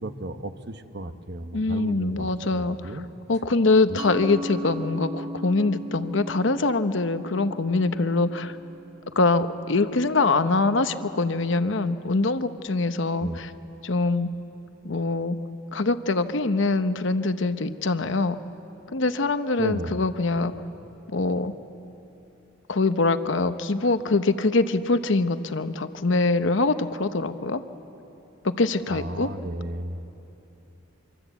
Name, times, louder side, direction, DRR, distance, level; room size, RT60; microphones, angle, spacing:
voice 1, 0.0-3.1 3.9-4.0 13.2-13.4 19.6-20.0 28.9-30.0, right 1 dB, 55° right, 9 dB, 1.1 m, -34 dB
voice 2, 1.5-3.0 3.3-8.6 9.2-13.5 13.8-14.3 14.8-15.4 15.7-18.4 18.9-20.5 21.1-21.5 22.7-27.6 28.4-29.3, left 3 dB, 65° left, 10 dB, 0.9 m, -24 dB
Mallet percussion, 4.0-9.4, equal, 20° right, 0.8 m, -38 dB
25.0 x 25.0 x 8.2 m, 2.9 s
head